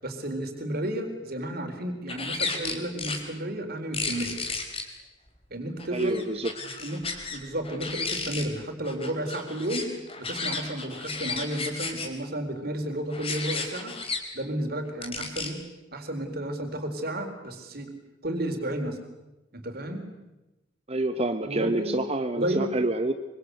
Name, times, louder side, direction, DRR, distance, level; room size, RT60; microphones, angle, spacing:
voice 1, 0.0-4.4 5.5-6.2 6.8-9.9 10.2-13.9 14.3-15.6 15.9-17.9 18.2-19.0 19.5-20.0 21.4-22.0 22.3-22.7, right 1 dB, 50° right, 6 dB, 4.1 m, -32 dB
sound 1, 2.1-3.2 3.9-4.8 5.8-7.4 7.6-8.5 8.8-12.1 13.1-14.2 15.0-15.5, left 4 dB, 30° left, 3.8 m, -33 dB
voice 2, 5.9-6.5 20.9-23.1, right 2 dB, 30° right, 8 dB, 1.0 m, -27 dB
25.0 x 24.5 x 8.0 m, 1.0 s
head